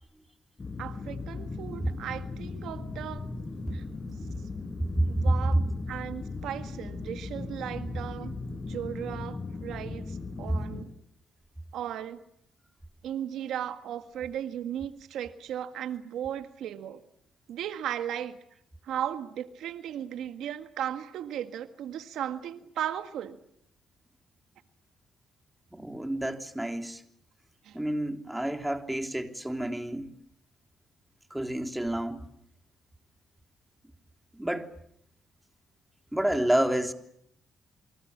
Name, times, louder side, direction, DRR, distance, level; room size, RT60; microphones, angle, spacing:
sound 1, 0.6-10.8, left 3 dB, 30° left, 6.0 m, -38 dB
voice 1, 0.8-3.3 3.7-3.8 5.1-8.3 8.7-10.9 11.7-12.2 13.0-17.0 17.5-18.4 18.8-23.4 27.6-27.8, right 10 dB, 80° right, 1.7 m, -36 dB
voice 2, 25.7-27.0 27.7-30.1 31.3-32.3 34.3-34.7 36.1-36.9, right 1 dB, 5° right, 3.3 m, -29 dB
29.0 x 24.5 x 7.4 m
cardioid pair, 90°, 0 cm